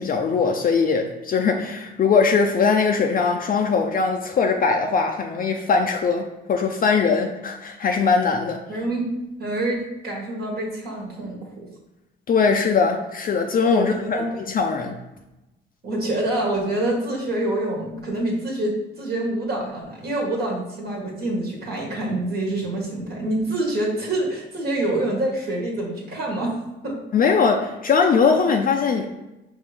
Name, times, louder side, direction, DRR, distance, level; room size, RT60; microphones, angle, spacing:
voice 1, 0.0-8.6 12.3-15.0 27.1-29.0, left 5 dB, 45° left, 3 dB, 0.4 m, -21 dB
voice 2, 8.7-9.1 9.4-11.6 13.7-14.3 15.8-26.6 26.8-26.9, right 1 dB, 55° right, -2 dB, 1.3 m, -26 dB
5.2 x 2.6 x 3.3 m, 0.99 s
cardioid pair, 90°, 20 cm